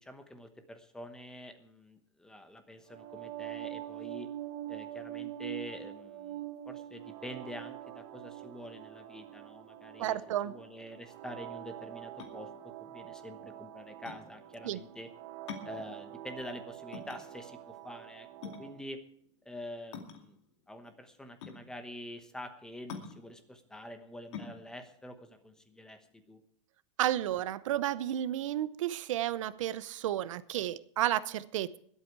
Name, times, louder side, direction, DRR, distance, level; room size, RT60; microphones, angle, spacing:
voice 1, 0.0-4.3 4.7-10.2 10.4-12.5 12.8-15.1 15.6-19.0 19.4-20.4 20.7-26.4, left 1 dB, 5° left, 8 dB, 1.0 m, -46 dB
sound 1, 2.9-18.8, right 13 dB, 45° right, 1.2 m, -45 dB
voice 2, 10.0-10.5 14.6-14.8 27.0-31.8, right 12 dB, 80° right, 16 dB, 0.7 m, -32 dB
sound 2, 12.2-26.4, left 6 dB, 65° left, 2.4 m, -48 dB
21.5 x 8.4 x 4.7 m, 0.65 s
supercardioid pair, 170°, 16 cm